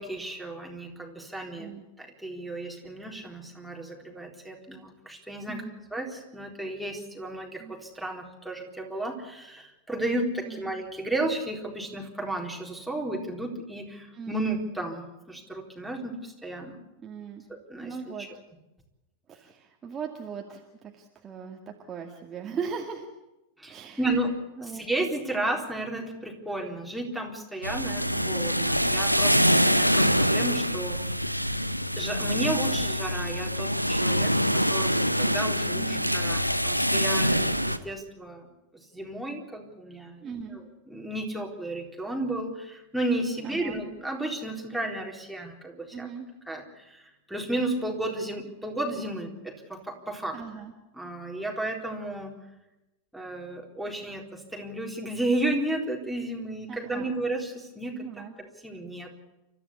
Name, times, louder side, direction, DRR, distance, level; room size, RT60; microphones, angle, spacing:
voice 1, 0.0-5.6 5.9-16.8 17.5-18.3 23.6-24.3 24.6-31.0 32.0-38.5 38.9-40.6 40.9-46.1 46.5-50.4 51.0-52.3 53.1-58.0 58.4-59.1, right 1 dB, ahead, 0 dB, 4.1 m, -33 dB
voice 2, 14.1-14.5 17.0-17.4 17.8-18.3 19.3-23.1 23.7-24.2 24.6-24.8 35.7-36.0 40.2-40.6 43.4-43.8 45.9-46.3 50.3-50.7 56.7-57.1 58.0-58.3, right 6 dB, 25° right, 2 dB, 2.2 m, -39 dB
sound 1, 27.6-37.8, equal, 90° left, 1.0 m, -25 dB
30.0 x 14.0 x 8.4 m, 0.96 s
figure-of-eight pair, 90°, 0 cm